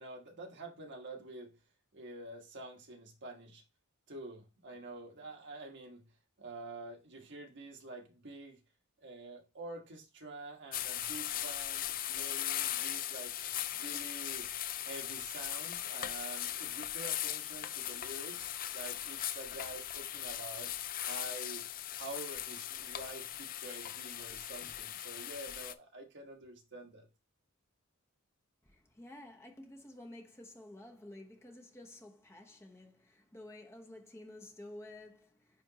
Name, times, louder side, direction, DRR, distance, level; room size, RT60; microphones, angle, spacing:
voice 1, 0.0-1.5 1.9-3.6 4.1-6.0 6.4-8.6 9.0-13.4 13.7-14.5 14.8-18.5 18.7-20.7 21.0-21.7 22.0-27.1, right 2 dB, 55° right, 1.4 m, -47 dB
sound 1, 10.7-25.7, left 12 dB, 40° left, 0.4 m, -39 dB
voice 2, 28.6-35.6, left 1 dB, 15° left, 1.0 m, -52 dB
9.5 x 3.4 x 2.9 m
head